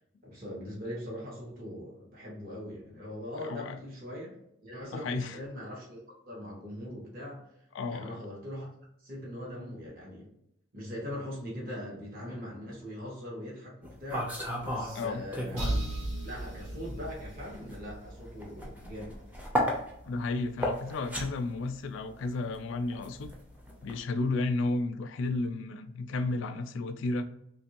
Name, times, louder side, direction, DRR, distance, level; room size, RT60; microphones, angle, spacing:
voice 1, 0.2-4.3 4.6-7.4 7.9-8.7 9.0-10.3 10.7-15.8 16.2-19.2, left 1 dB, 45° right, -5 dB, 1.1 m, -41 dB
voice 2, 3.4-3.8 4.9-5.4 7.7-8.2 14.9-15.2 20.1-23.3 23.8-27.2, left 3 dB, 60° left, 8 dB, 0.3 m, -32 dB
sound 1, 13.8-15.9 16.2-24.0, equal, 5° right, 0.5 m, -35 dB
sound 2, 15.6-19.3, right 1 dB, 90° right, 1.1 m, -36 dB
3.0 x 2.5 x 2.8 m, 0.77 s
head